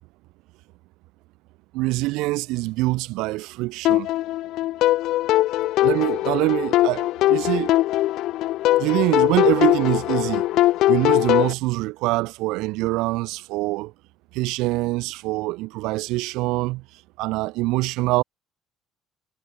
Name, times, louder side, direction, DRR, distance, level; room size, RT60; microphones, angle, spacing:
voice 1, 1.7-4.1 5.8-7.7 8.8-13.9 14.3-16.8 17.2-18.2, right 21 dB, 80° right, 6.5 m, -24 dB
sound 1, 3.8-11.5, left 15 dB, 70° left, 5.0 m, -21 dB
cardioid pair, 120°, 0 cm